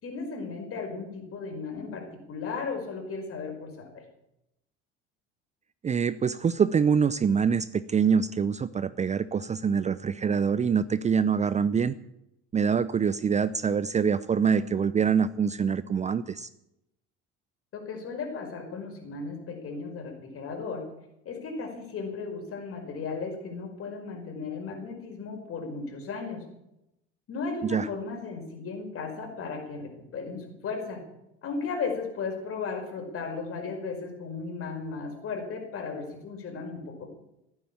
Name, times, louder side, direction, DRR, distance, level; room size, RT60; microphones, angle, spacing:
voice 1, 0.0-4.0 17.7-20.9 21.3-26.5 27.3-31.0 31.4-37.1, left 4 dB, 40° left, 4 dB, 5.2 m, -35 dB
voice 2, 5.8-11.9 12.5-16.5 27.6-27.9, right 6 dB, 20° right, 16 dB, 0.6 m, -25 dB
15.5 x 9.7 x 8.7 m, 0.86 s
figure-of-eight pair, 60°, 33 cm